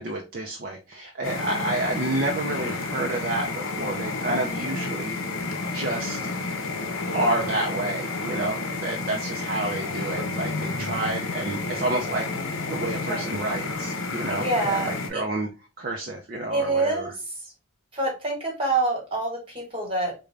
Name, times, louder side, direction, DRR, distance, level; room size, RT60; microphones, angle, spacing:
voice 1, 0.0-5.2 5.7-6.2 7.1-12.3 12.7-15.5 15.8-17.1, right 2 dB, 40° right, 0 dB, 0.5 m, -29 dB
sound 1, 1.2-15.1, left 3 dB, 65° left, 0.7 m, -31 dB
voice 2, 14.3-15.2 16.5-17.5 17.9-20.1, right 2 dB, 25° right, 0 dB, 1.3 m, -27 dB
3.7 x 2.2 x 3.2 m, 0.30 s
head